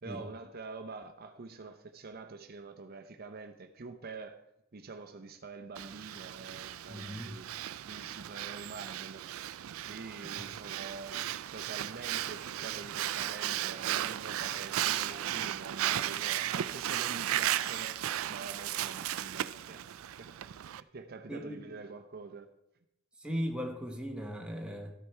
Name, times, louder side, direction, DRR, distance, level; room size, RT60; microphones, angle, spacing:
voice 1, 0.0-4.4 4.7-7.5 7.8-9.2 9.9-11.2 11.5-17.9 18.3-19.8 20.2-22.5, right 3 dB, 50° right, 6 dB, 0.7 m, -46 dB
Breathing, 5.8-20.8, right 12 dB, 85° right, 0.4 m, -35 dB
voice 2, 6.9-7.3 10.4-10.5 21.3-21.6 23.2-24.9, equal, 5° right, 2 dB, 1.2 m, -38 dB
13.0 x 6.8 x 4.5 m, 0.86 s
head